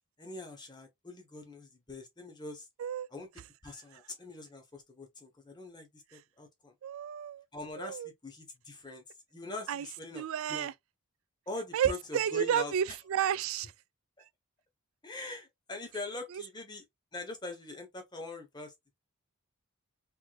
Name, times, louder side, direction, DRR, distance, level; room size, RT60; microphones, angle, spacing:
voice 1, 0.2-2.7 3.1-3.3 3.6-6.7 7.5-9.0 9.3-10.7 11.5-12.7 15.0-16.8 17.1-18.7, left 2 dB, 20° left, 0.9 m, -43 dB
voice 2, 6.8-7.4 7.8-8.1 9.7-9.9 10.1-10.7 11.7-13.7 16.3-16.4, right 9 dB, 65° right, 0.3 m, -31 dB
3.4 x 3.2 x 2.3 m
head